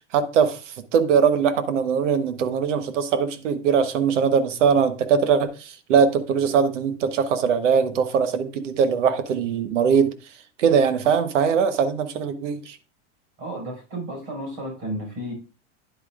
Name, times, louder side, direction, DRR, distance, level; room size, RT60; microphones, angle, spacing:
voice 1, 0.1-10.1 10.6-12.8, right 6 dB, 80° right, 1.2 m, -21 dB
voice 2, 13.4-15.3, right 1 dB, 40° right, 5.3 m, -32 dB
9.9 x 8.5 x 2.4 m
supercardioid pair, 160°, 36 cm